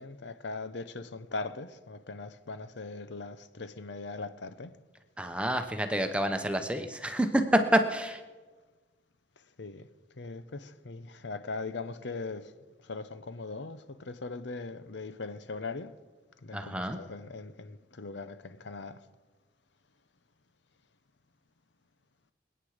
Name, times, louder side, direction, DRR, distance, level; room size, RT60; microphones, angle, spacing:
voice 1, 0.0-4.7 9.6-9.9 10.2-12.5 12.8-15.9 16.4-19.0, left 3 dB, 80° left, 0.8 m, -40 dB
voice 2, 5.2-8.2 16.5-17.0, right 1 dB, 5° right, 1.0 m, -28 dB
26.5 x 9.0 x 5.0 m
head